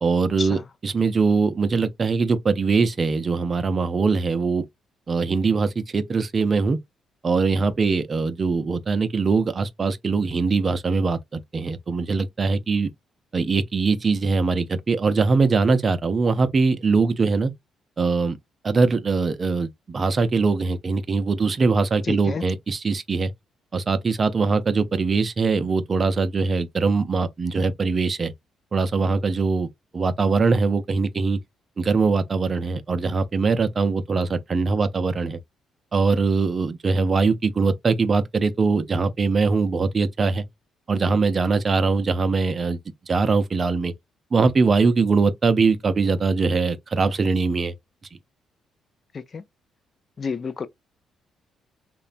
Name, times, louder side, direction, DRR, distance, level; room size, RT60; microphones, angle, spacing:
voice 1, 0.0-4.6 5.1-6.8 7.2-12.9 13.3-17.5 18.0-18.4 18.6-23.3 23.7-28.3 28.7-29.7 29.9-31.4 31.8-35.4 35.9-40.4 40.9-42.8 43.1-43.9 44.3-47.7, right 4 dB, 35° right, 0.4 m, -22 dB
voice 2, 22.0-22.4 49.1-49.4 50.2-50.7, left 5 dB, 40° left, 0.3 m, -30 dB
3.0 x 2.1 x 2.4 m
cardioid pair, 90°, 0 cm